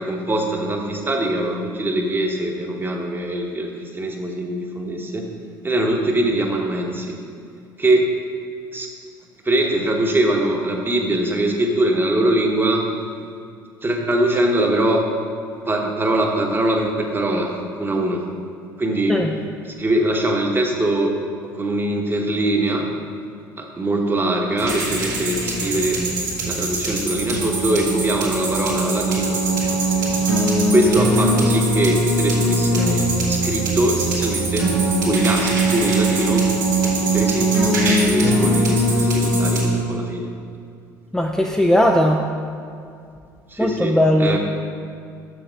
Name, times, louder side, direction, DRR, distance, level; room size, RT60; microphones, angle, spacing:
voice 1, 0.0-5.3 5.6-7.2 7.8-8.1 8.7-8.9 9.4-12.9 13.8-15.2 15.7-18.3 18.8-19.2 19.6-21.1 21.4-22.9 23.6-26.0 26.4-30.1 30.7-36.5 36.8-40.3 43.5-44.4, right 1 dB, 20° right, 2 dB, 1.2 m, -22 dB
sound 1, 24.6-39.6, right 1 dB, 85° right, 2.0 m, -20 dB
voice 2, 41.1-42.2 43.6-44.4, equal, 5° left, 0 dB, 0.5 m, -17 dB
6.5 x 6.4 x 4.6 m, 2.4 s
hypercardioid pair, 65°, 10 cm